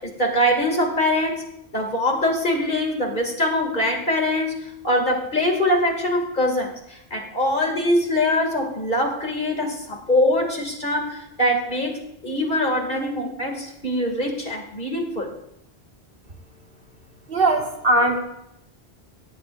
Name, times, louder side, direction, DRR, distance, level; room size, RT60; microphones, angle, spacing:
voice 1, 0.0-1.4 1.7-15.3, left 1 dB, 45° left, 1 dB, 2.8 m, -23 dB
voice 2, 17.3-18.2, right 2 dB, 55° right, 1 dB, 2.2 m, -19 dB
23.5 x 18.0 x 2.6 m, 0.81 s
omnidirectional pair, 1.1 m